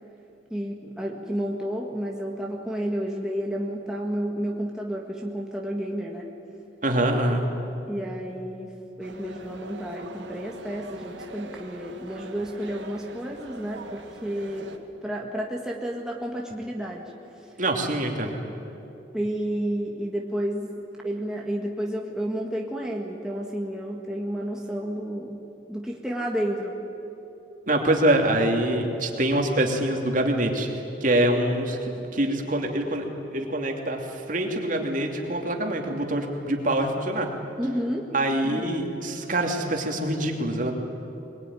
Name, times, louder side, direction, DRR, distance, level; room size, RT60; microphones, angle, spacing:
voice 1, 0.5-6.3 7.9-8.7 9.0-17.0 17.4-17.5 19.1-25.4 25.7-26.8 37.6-38.1 38.4-38.7, equal, 5° right, -1 dB, 1.8 m, -31 dB
voice 2, 6.8-7.5 17.6-18.4 27.7-30.7 31.0-37.3 38.1-40.7, right 1 dB, 45° right, 2 dB, 2.8 m, -25 dB
sound 1, 9.0-14.8, right 2 dB, 80° right, 2.0 m, -43 dB
22.5 x 22.0 x 9.9 m, 2.9 s
head